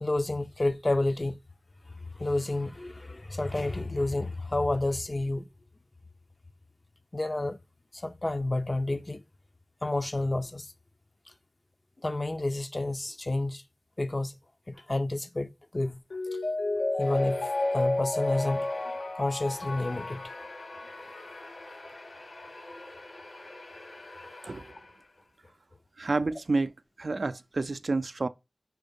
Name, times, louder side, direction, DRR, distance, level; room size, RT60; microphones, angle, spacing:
voice 1, 0.0-1.4 2.2-5.5 7.1-7.6 7.9-9.2 9.8-10.7 12.0-13.6 14.0-14.4 14.7-16.0 17.0-18.7 19.2-20.3, left 2 dB, 40° left, 0.5 m, -30 dB
Mallet percussion, 16.1-21.6 22.0-22.1, left 2 dB, 90° left, 0.8 m, -31 dB
sound 1, 17.0-25.3, left 2 dB, 65° left, 1.5 m, -47 dB
voice 2, 26.0-26.7 27.0-28.3, right 3 dB, 70° right, 0.4 m, -29 dB
5.8 x 4.3 x 5.3 m
wide cardioid pair, 65°, 0 cm